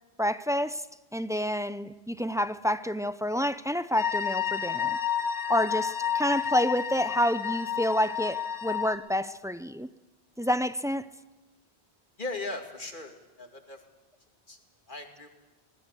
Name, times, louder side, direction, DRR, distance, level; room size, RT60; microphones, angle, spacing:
voice 1, 0.2-0.8 1.1-5.0 5.5-9.9 10.4-11.1, equal, 5° right, 0.5 m, -28 dB
sound 1, 4.0-8.9, left 8 dB, 80° left, 2.0 m, -30 dB
voice 2, 12.2-13.8 14.5-14.6 14.9-15.3, left 2 dB, 50° left, 2.7 m, -38 dB
24.5 x 19.0 x 8.3 m
omnidirectional pair, 1.1 m